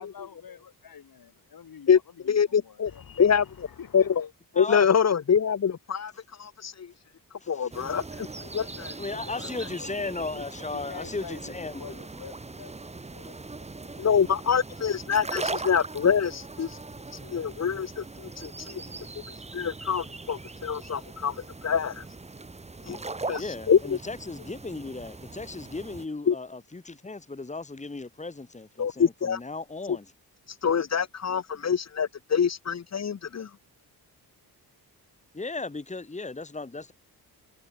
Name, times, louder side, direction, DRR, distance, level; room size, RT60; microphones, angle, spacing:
voice 1, 0.0-4.3 8.6-9.1 10.3-14.2, left 7 dB, 60° left, 7.8 m, -47 dB
voice 2, 2.3-2.9 3.2-3.7 3.9-4.0 4.6-6.9 7.5-8.9 14.0-16.8 17.1-18.8 19.5-22.0 22.8-23.0 23.3-24.0 26.3-26.4 28.8-29.4 30.5-33.5, left 7 dB, 40° left, 1.4 m, -25 dB
voice 3, 4.6-4.9 7.4-7.7 9.0-11.7 22.9-23.1 23.3-30.0 35.3-36.9, left 3 dB, 20° left, 3.0 m, -36 dB
sound 1, 7.7-26.1, right 3 dB, 15° right, 1.4 m, -40 dB
wide cardioid pair, 170°, 39 cm